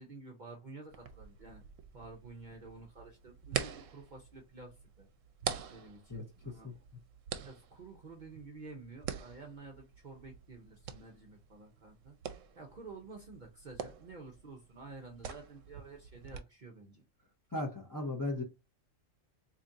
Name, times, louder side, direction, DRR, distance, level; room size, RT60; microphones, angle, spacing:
voice 1, 0.0-1.6 1.9-5.1 5.7-6.8 7.4-12.2 12.5-17.0, right 3 dB, 45° right, 1 dB, 0.7 m, -51 dB
sound 1, 0.9-16.4, right 8 dB, 80° right, 0.9 m, -45 dB
voice 2, 17.5-18.4, left 2 dB, 20° left, 0 dB, 0.8 m, -36 dB
4.0 x 2.9 x 2.5 m, 0.26 s
omnidirectional pair, 1.3 m